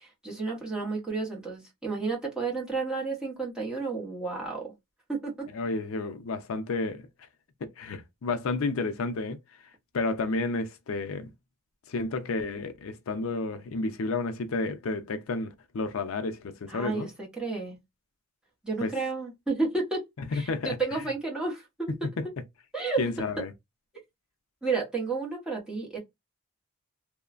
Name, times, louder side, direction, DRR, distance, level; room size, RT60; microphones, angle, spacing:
voice 1, 0.0-4.7 5.1-5.5 16.7-17.8 18.6-20.0 20.3-21.9 22.7-23.0 24.6-26.0, right 4 dB, 5° right, 0.9 m, -31 dB
voice 2, 5.5-7.1 7.6-9.4 9.9-11.3 11.9-17.1 18.8-18.9 20.3-21.0 22.0-22.3 23.0-23.5, left 3 dB, 75° left, 0.5 m, -31 dB
3.0 x 2.1 x 2.4 m
head